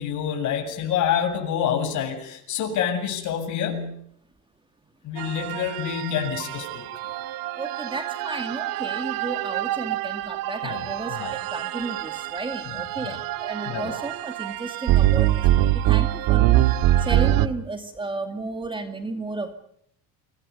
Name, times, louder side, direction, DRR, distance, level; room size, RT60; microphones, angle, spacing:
voice 1, 0.0-3.9 5.0-7.1 10.6-10.8 11.2-11.3 13.0-13.2 13.7-13.9, left 8 dB, 50° left, 4 dB, 7.8 m, -27 dB
sound 1, 5.2-17.5, right 13 dB, 60° right, 1.9 m, -24 dB
voice 2, 7.6-16.5 17.0-19.5, right 3 dB, 15° right, 7 dB, 2.4 m, -33 dB
30.0 x 26.5 x 5.5 m, 0.68 s
cardioid pair, 145°, 38 cm